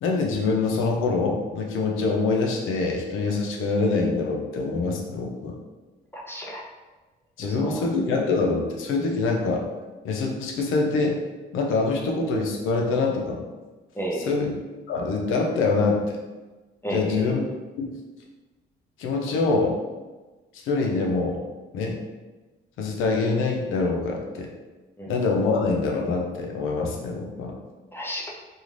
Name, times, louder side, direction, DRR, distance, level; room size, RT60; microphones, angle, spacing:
voice 1, 0.0-5.6 7.4-9.6 10.0-11.2 11.5-13.4 14.3-14.6 14.9-16.2 16.9-17.4 17.8-17.9 19.0-19.8 20.5-21.4 21.7-22.0 22.8-24.5 25.1-27.6, left 3 dB, 90° left, 0 dB, 0.5 m, -25 dB
voice 2, 6.1-6.6 7.4-7.9 13.9-14.3 16.8-17.4 25.0-25.1 27.9-28.3, right 1 dB, 10° left, -3 dB, 0.5 m, -32 dB
2.5 x 2.4 x 3.1 m, 1.2 s
cardioid pair, 90°, 20 cm